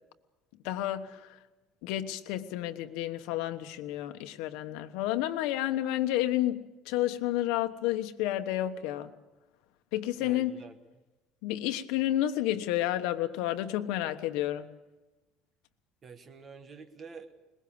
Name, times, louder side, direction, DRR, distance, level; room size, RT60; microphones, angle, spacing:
voice 1, 0.6-1.4 1.8-9.1 9.9-10.6 11.4-14.7, left 13 dB, 75° left, 9 dB, 1.2 m, -31 dB
voice 2, 10.2-10.8 16.0-17.4, right 4 dB, 25° right, 8 dB, 1.3 m, -48 dB
21.5 x 21.0 x 7.1 m, 1.1 s
cardioid pair, 165°, 0 cm